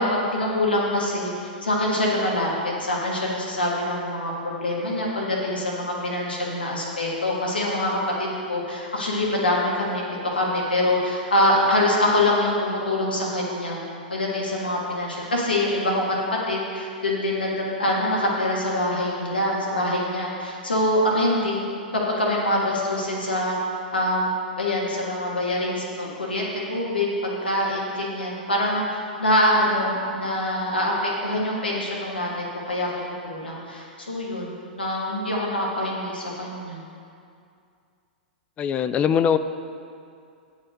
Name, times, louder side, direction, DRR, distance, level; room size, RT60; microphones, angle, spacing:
voice 1, 0.0-1.3 1.6-13.8 14.1-16.1 16.5-17.5 17.8-21.6 21.9-23.6 23.9-24.3 24.6-32.9 33.2-36.8, left 1 dB, 85° left, -4 dB, 1.7 m, -24 dB
voice 2, 38.6-39.4, left 8 dB, 25° left, 11 dB, 0.4 m, -21 dB
8.5 x 5.5 x 6.6 m, 2.4 s
figure-of-eight pair, 105°, 5 cm